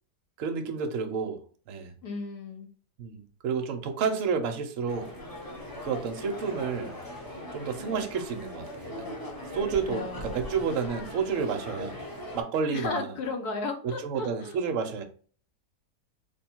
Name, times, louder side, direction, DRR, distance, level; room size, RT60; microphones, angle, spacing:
voice 1, 0.4-1.4 1.7-1.9 3.0-5.1 5.8-7.0 7.5-8.7 9.0-9.1 9.5-11.9 12.3-13.1 13.8-15.0, right 6 dB, 65° right, 5 dB, 0.9 m, -30 dB
voice 2, 2.0-2.7 9.9-10.5 12.7-14.6, left 3 dB, 75° left, 5 dB, 1.3 m, -35 dB
sound 1, 4.9-12.4, left 1 dB, 20° left, 0.8 m, -40 dB
3.4 x 2.3 x 4.4 m, 0.43 s
omnidirectional pair, 1.7 m